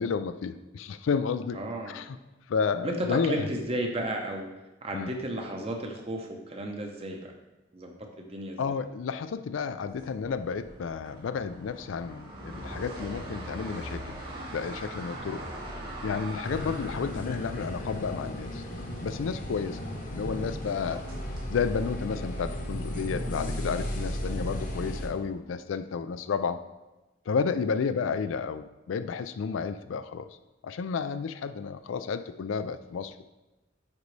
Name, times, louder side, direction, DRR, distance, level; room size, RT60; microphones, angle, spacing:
voice 1, 0.0-1.6 1.9-2.2 2.5-3.5 4.9-5.1 8.6-14.0 14.5-15.4 16.0-18.7 19.0-19.8 20.1-21.0 21.5-26.6 27.3-30.3 30.6-33.3, left 5 dB, 90° left, 12 dB, 0.4 m, -31 dB
voice 2, 1.5-2.0 2.8-4.5 4.8-7.3 7.7-8.6 20.6-21.0, right 1 dB, 30° right, 2 dB, 0.8 m, -33 dB
sound 1, 9.9-21.4, right 1 dB, 50° right, 2.1 m, -42 dB
sound 2, 16.4-25.1, equal, 45° left, 0.9 m, -35 dB
9.6 x 4.0 x 3.2 m, 1.1 s
head